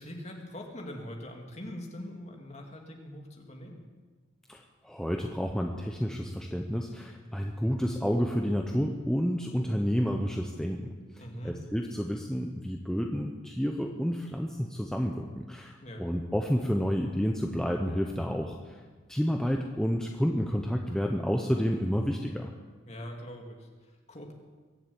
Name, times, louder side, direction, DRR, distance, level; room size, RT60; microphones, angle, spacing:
voice 1, 0.0-3.8 11.2-11.5 15.8-16.0 22.9-24.3, equal, 35° left, 1 dB, 2.3 m, -42 dB
voice 2, 4.5-18.8 19.1-22.5, equal, 5° left, 1 dB, 0.8 m, -30 dB
22.5 x 7.5 x 8.5 m, 1.4 s
head